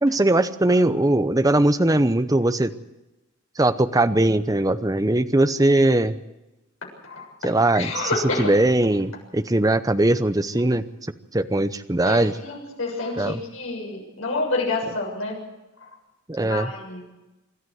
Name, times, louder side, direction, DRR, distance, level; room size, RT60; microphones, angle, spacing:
voice 1, 0.0-2.7 3.6-6.2 7.4-8.1 8.4-10.8 11.3-12.3 13.2-13.4 16.3-16.7, right 1 dB, 15° right, 11 dB, 0.7 m, -20 dB
voice 2, 7.7-8.5 12.0-15.4 16.4-17.0, left 3 dB, 80° left, -1 dB, 7.2 m, -28 dB
26.0 x 13.0 x 7.9 m, 1.0 s
head